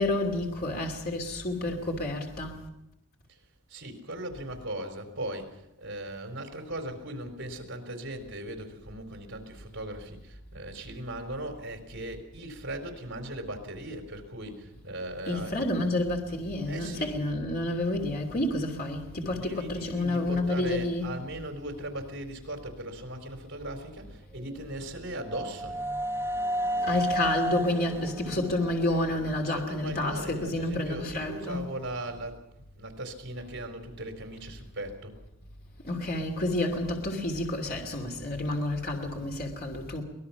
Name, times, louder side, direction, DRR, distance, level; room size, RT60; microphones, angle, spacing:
voice 1, 0.0-2.6 15.3-21.1 26.8-31.7 35.8-40.0, left 1 dB, 50° left, 2.9 m, -29 dB
voice 2, 3.7-15.6 16.7-17.3 19.3-25.8 29.4-32.4 32.8-35.1, right 1 dB, 60° right, 4.1 m, -38 dB
sound 1, 24.3-30.2, right 1 dB, 10° right, 1.0 m, -33 dB
23.5 x 20.0 x 5.9 m
head